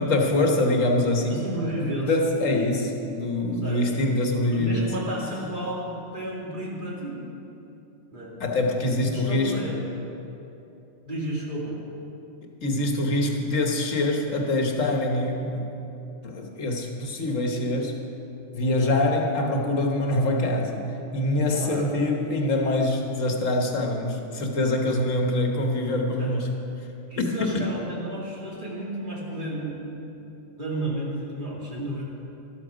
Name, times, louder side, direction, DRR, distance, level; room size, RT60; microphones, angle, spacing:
voice 1, 0.0-1.4 1.7-4.9 8.4-9.5 12.6-15.7 16.2-18.0 18.5-20.9 21.1-26.5 27.2-27.6, left 1 dB, 80° left, 2 dB, 1.6 m, -24 dB
voice 2, 1.3-2.3 3.6-3.8 4.5-7.2 8.1-8.3 9.0-9.8 11.1-11.8 21.5-22.0 26.2-26.3 27.1-29.8 30.1-30.3 30.6-32.0, right 1 dB, 40° right, -5 dB, 2.6 m, -32 dB
13.0 x 12.5 x 5.0 m, 2.9 s
omnidirectional pair, 1.3 m